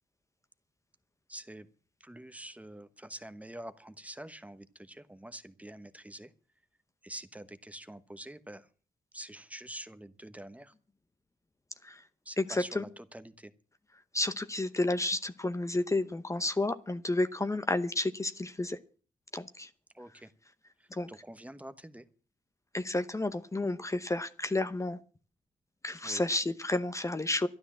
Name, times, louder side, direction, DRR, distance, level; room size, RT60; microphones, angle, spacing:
voice 1, 1.3-1.7 2.0-6.3 7.0-8.7 9.1-10.7 12.2-13.5 19.9-20.3 20.8-22.1 26.0-26.2, right 1 dB, 10° right, 12 dB, 1.1 m, -46 dB
voice 2, 12.4-12.8 14.1-18.8 19.3-19.7 20.9-21.1 22.7-25.0 25.8-27.5, left 2 dB, 20° left, 11 dB, 0.9 m, -31 dB
12.5 x 11.0 x 7.4 m, 0.39 s
cardioid pair, 75°, 14 cm